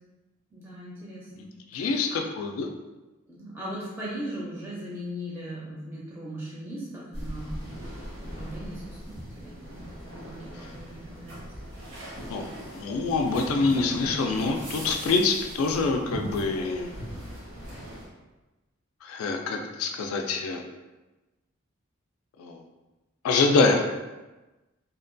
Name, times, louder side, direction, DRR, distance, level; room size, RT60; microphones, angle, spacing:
voice 1, 0.5-2.0 3.3-7.8 8.2-9.9 10.1-11.4, equal, 10° right, -7 dB, 0.4 m, -39 dB
voice 2, 1.7-2.1 2.4-2.7 12.3-17.0 19.0-20.6 22.4-22.6 23.2-23.9, left 3 dB, 80° left, 5 dB, 0.3 m, -25 dB
sound 1, 7.1-18.1, equal, 90° right, 1.0 m, -40 dB
2.7 x 2.2 x 2.5 m, 1.1 s
head